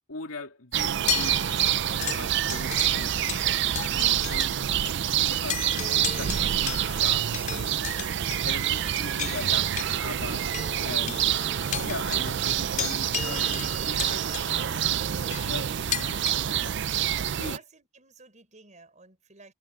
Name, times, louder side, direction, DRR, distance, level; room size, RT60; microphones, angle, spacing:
voice 1, 0.1-1.5 2.0-3.2 3.8-4.6 5.0-5.7 6.1-7.9 8.4-10.5 10.8-11.2 11.6-14.2 14.6-14.8 15.4-16.2 16.6-16.8 17.4-17.6, left 3 dB, 90° left, 2.6 m, -40 dB
sound 1, 0.7-17.6, right 10 dB, 60° right, 0.5 m, -27 dB
sound 2, 1.0-4.6 4.8-5.0 5.4-16.3, left 8 dB, 40° left, 4.3 m, -36 dB
voice 2, 10.8-11.2 17.2-19.5, right 3 dB, 35° right, 6.1 m, -52 dB
head